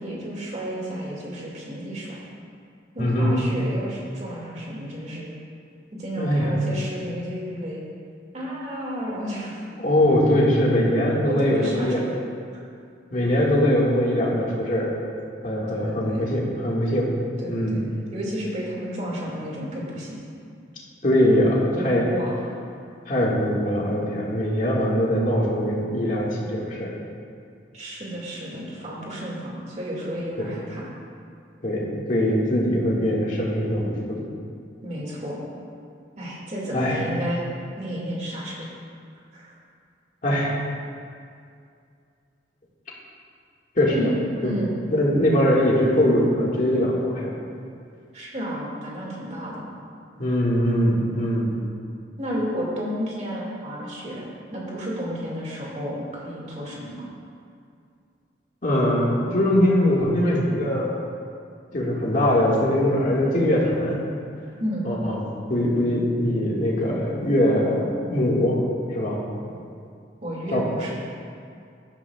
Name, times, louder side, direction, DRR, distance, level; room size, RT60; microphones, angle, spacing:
voice 1, 0.0-2.2 2.9-5.3 5.9-7.8 8.3-9.6 11.3-12.1 12.5-12.6 15.7-16.3 17.4-17.8 18.1-20.2 21.7-22.4 27.7-30.9 34.8-35.4 36.2-37.4 37.8-38.7 39.3-39.5 43.9-44.8 48.1-49.6 52.2-54.2 54.5-57.1 64.6-64.9 70.2-70.9, equal, 40° right, -4 dB, 2.3 m, -31 dB
voice 2, 3.0-3.3 6.2-6.5 9.8-12.0 13.1-14.9 15.4-17.1 17.5-17.8 21.0-22.1 23.1-26.9 30.4-30.5 31.6-34.2 36.7-37.0 40.2-40.6 43.8-43.9 44.4-44.5 44.9-47.3 50.2-51.5 58.6-60.9 61.7-64.0 64.8-65.2 65.5-68.6 68.9-69.2 70.5-70.6, left 1 dB, 45° left, -4 dB, 1.9 m, -22 dB
14.5 x 11.5 x 2.4 m, 2.4 s
head